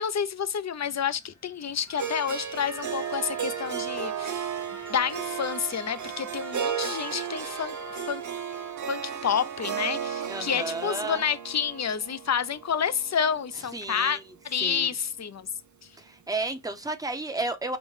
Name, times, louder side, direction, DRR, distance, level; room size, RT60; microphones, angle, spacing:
voice 1, 0.0-4.5 4.9-8.2 8.9-14.2 14.4-15.5, left 7 dB, 65° left, 0.5 m, -29 dB
sound 1, 0.8-6.7, left 2 dB, 85° left, 1.0 m, -51 dB
Harp, 2.0-14.1, right 8 dB, 90° right, 0.6 m, -35 dB
Trumpet, 2.6-5.6 5.9-10.0, right 3 dB, 55° right, 0.9 m, -45 dB
voice 2, 10.3-11.2 13.7-14.2 14.6-14.9 16.0-17.8, right 2 dB, 10° right, 0.6 m, -32 dB
5.1 x 2.1 x 3.1 m
wide cardioid pair, 45°, 29 cm